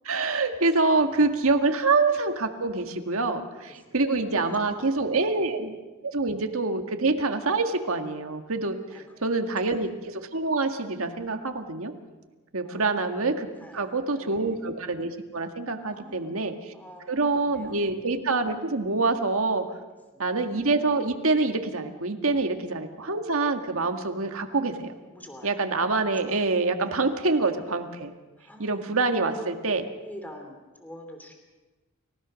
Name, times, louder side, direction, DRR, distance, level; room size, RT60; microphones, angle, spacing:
voice 1, 0.0-5.7 6.0-11.9 12.5-13.5 13.7-16.7 17.1-19.7 20.2-24.9 25.4-28.1 28.6-29.9, right 3 dB, 65° right, 6 dB, 1.9 m, -26 dB
voice 2, 4.6-5.2 6.1-6.2 8.9-9.0 12.6-12.9 13.6-14.6 15.9-17.9 20.1-20.2 22.3-22.6 25.1-25.6 26.0-26.4 28.4-28.9 29.2-29.5 30.0-31.3, equal, 10° left, 4 dB, 2.8 m, -46 dB
29.5 x 16.5 x 6.4 m, 1.2 s
head